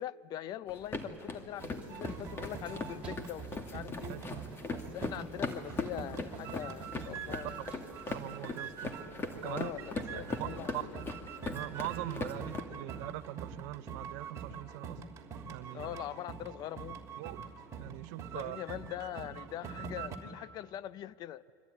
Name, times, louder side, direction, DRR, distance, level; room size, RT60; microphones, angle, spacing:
voice 1, 0.0-4.2 4.7-7.6 9.4-11.0 15.7-17.0 18.3-21.4, left 11 dB, 45° left, 17 dB, 0.7 m, -42 dB
sound 1, 0.7-12.6, left 3 dB, 25° left, 2.3 m, -40 dB
sound 2, 1.6-10.7, right 4 dB, 15° right, 4.2 m, -63 dB
sound 3, 1.6-9.2 9.4-20.2, right 5 dB, 35° right, 3.0 m, -45 dB
voice 2, 4.1-4.5 7.8-8.9 9.3-9.7 10.1-10.9 11.5-15.0 15.5-15.9 17.2-17.4 17.8-18.6, right 20 dB, 70° right, 12 dB, 0.6 m, -42 dB
25.0 x 24.5 x 9.5 m, 2.5 s
supercardioid pair, 125°, 9 cm